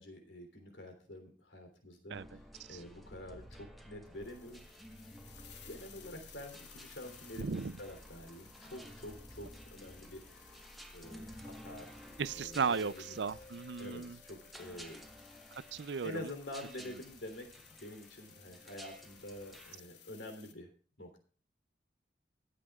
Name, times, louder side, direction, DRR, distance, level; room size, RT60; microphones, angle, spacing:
voice 1, 0.0-2.2 2.7-4.9 5.6-10.6 10.9-13.4 13.8-15.0 16.0-20.7 21.0-21.2, left 1 dB, 85° left, 3.3 m, -48 dB
sound 1, 2.1-19.8, equal, ahead, 1.5 m, -53 dB
sound 2, 4.1-20.5, left 6 dB, 70° left, 1.6 m, -58 dB
voice 2, 7.4-7.7 12.2-14.2 15.5-16.3, right 5 dB, 70° right, 0.5 m, -36 dB
25.0 x 8.3 x 2.4 m
head